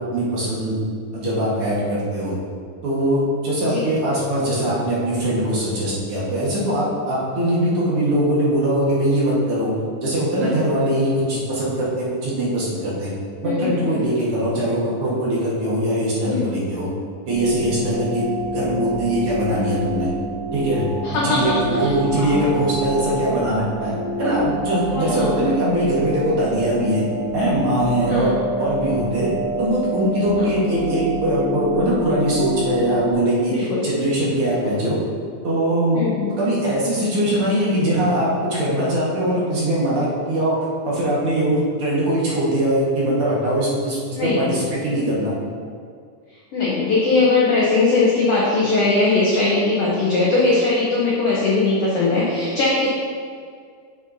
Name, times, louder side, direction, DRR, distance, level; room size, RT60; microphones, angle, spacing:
voice 1, 0.1-0.8 1.1-2.4 2.8-9.7 10.0-13.1 13.4-16.9 17.3-20.1 20.5-20.8 21.1-23.9 24.2-27.0 27.3-29.3 29.6-35.0 35.4-36.0 36.4-40.6 40.8-45.3, right 1 dB, 50° right, -7 dB, 1.8 m, -21 dB
voice 2, 13.4-14.0 16.2-16.5 21.0-22.4 24.9-25.3 28.1-28.4 30.4-30.5 33.4-33.9 35.9-36.4 44.2-44.6 46.5-52.9, left 3 dB, 75° left, -6 dB, 1.4 m, -20 dB
sound 1, 17.3-33.1, right 1 dB, 85° right, 2.6 m, -28 dB
8.1 x 6.4 x 2.7 m, 2.1 s
omnidirectional pair, 4.1 m